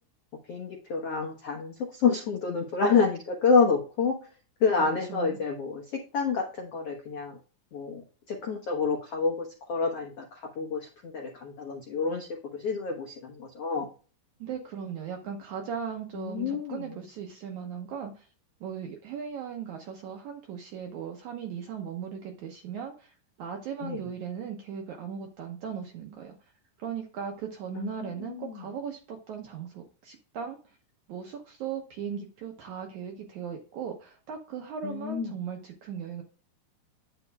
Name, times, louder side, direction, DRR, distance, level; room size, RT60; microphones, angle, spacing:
voice 1, 0.5-4.3 4.6-7.4 7.7-13.9 16.1-16.9 23.8-24.0 27.7-28.6 34.8-35.3, left 5 dB, 90° left, 0 dB, 1.3 m, -28 dB
voice 2, 14.4-18.3 18.6-26.3 26.8-30.6 31.1-36.2, right 7 dB, 75° right, 2 dB, 1.7 m, -38 dB
9.6 x 7.1 x 2.3 m, 0.37 s
omnidirectional pair, 4.6 m